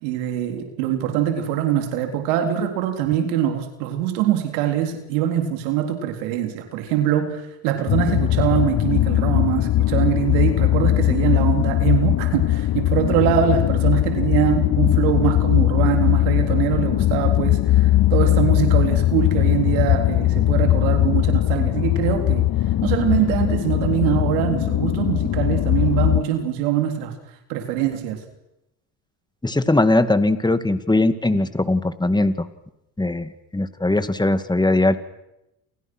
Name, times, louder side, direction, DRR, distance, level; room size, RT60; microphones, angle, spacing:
voice 1, 0.0-22.5 22.8-27.1 27.5-28.2, right 10 dB, 90° right, 6 dB, 3.9 m, -23 dB
sound 1, 7.9-26.2, left 14 dB, 50° left, 1.1 m, -20 dB
voice 2, 29.4-32.5 33.0-35.0, left 2 dB, 10° left, 11 dB, 2.3 m, -20 dB
29.0 x 29.0 x 6.3 m, 0.88 s
supercardioid pair, 80°, 45 cm